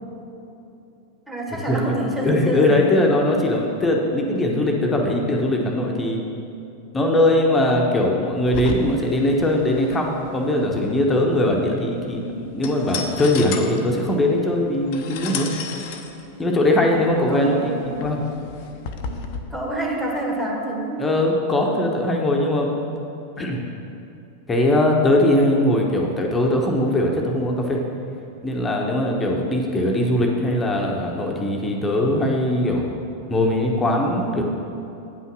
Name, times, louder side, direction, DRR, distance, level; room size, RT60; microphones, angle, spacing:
voice 1, 1.3-3.1 17.3-18.3 19.0-21.0, right 1 dB, 5° right, -2 dB, 1.7 m, -28 dB
voice 2, 2.2-6.2 6.9-15.5 16.4-18.2 21.0-22.7 23.4-23.6 24.5-27.8 28.4-32.9 33.3-34.4, left 1 dB, 15° left, 0 dB, 1.1 m, -20 dB
sound 1, 8.5-19.4, left 5 dB, 45° left, 0.7 m, -35 dB
9.3 x 5.6 x 6.0 m, 2.8 s
figure-of-eight pair, 90°, 0 cm